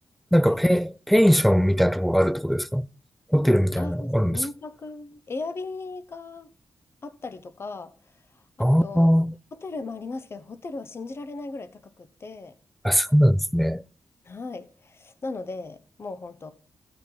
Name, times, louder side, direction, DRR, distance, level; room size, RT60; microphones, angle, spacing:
voice 1, 0.3-2.9 3.3-4.5 8.6-9.3 12.8-13.8, equal, ahead, 0.3 m, -20 dB
voice 2, 3.8-6.5 7.0-7.9 8.6-9.1 9.5-12.5 14.2-16.5, left 3 dB, 40° left, 0.9 m, -37 dB
15.0 x 5.1 x 3.9 m
cardioid pair, 100°, 6 cm